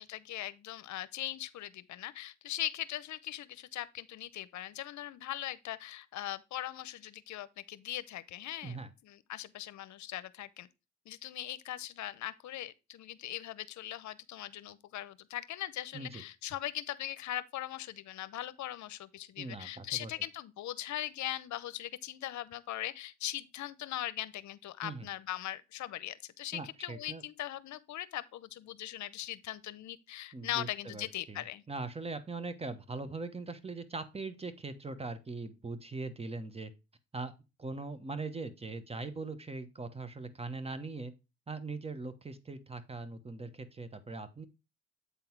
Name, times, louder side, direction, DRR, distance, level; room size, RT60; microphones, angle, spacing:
voice 1, 0.0-10.7 11.1-31.6, left 13 dB, 70° left, 0.7 m, -40 dB
voice 2, 19.4-20.1 24.8-25.1 26.5-27.2 30.3-36.7 37.1-37.3 37.6-41.1 41.5-44.5, right 3 dB, 20° right, 1.1 m, -41 dB
8.3 x 3.9 x 4.6 m
cardioid pair, 90°, 30 cm